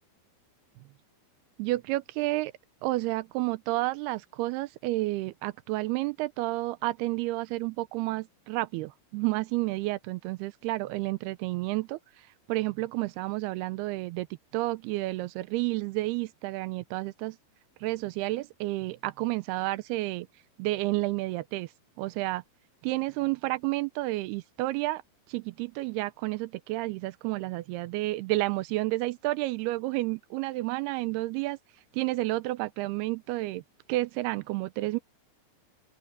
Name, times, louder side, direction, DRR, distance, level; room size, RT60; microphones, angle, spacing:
voice 1, 1.6-2.5 2.8-12.0 12.5-14.3 14.5-17.4 17.8-20.3 20.6-21.7 22.0-22.4 22.8-25.0 25.3-31.6 31.9-33.6 33.9-35.0, right 19 dB, 90° right, 2.7 m, -30 dB
open air
omnidirectional pair, 4.6 m